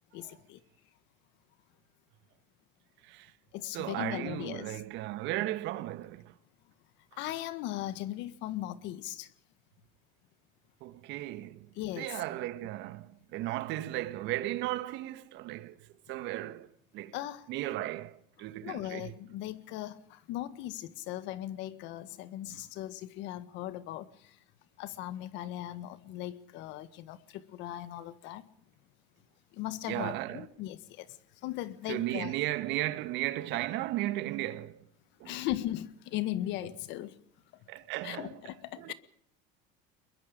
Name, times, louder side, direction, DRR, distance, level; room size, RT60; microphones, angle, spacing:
voice 1, 0.1-0.6 3.5-4.8 7.2-9.3 11.7-12.2 17.1-17.5 18.6-24.4 24.8-28.5 29.5-31.1 31.4-32.3 35.2-37.2 38.0-38.9, left 14 dB, 65° left, 1.6 m, -38 dB
voice 2, 3.7-6.3 10.8-11.7 12.0-17.1 17.5-19.1 22.4-22.6 29.9-30.5 31.9-34.8 35.2-35.4 37.7-38.4 38.8-38.9, right 15 dB, 65° right, 1.5 m, -35 dB
23.0 x 22.0 x 5.2 m
supercardioid pair, 115°, 20 cm